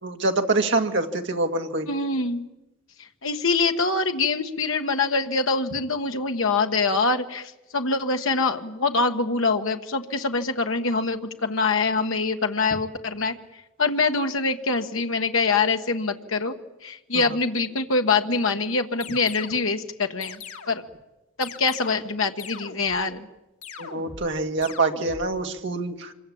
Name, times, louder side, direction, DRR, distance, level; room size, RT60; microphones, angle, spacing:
voice 1, 0.0-1.9 23.8-26.1, right 3 dB, 55° right, 4 dB, 1.9 m, -25 dB
voice 2, 1.9-2.5 3.2-13.3 13.8-16.6 16.8-20.4 20.7-20.8 21.4-23.3, left 4 dB, 70° left, 5 dB, 1.4 m, -24 dB
sound 1, 19.0-19.7 20.2-20.9 21.4-22.1 22.4-23.0 23.6-24.3 24.6-25.3, left 6 dB, 85° left, 2.2 m, -41 dB
26.0 x 22.5 x 8.6 m, 1.0 s
head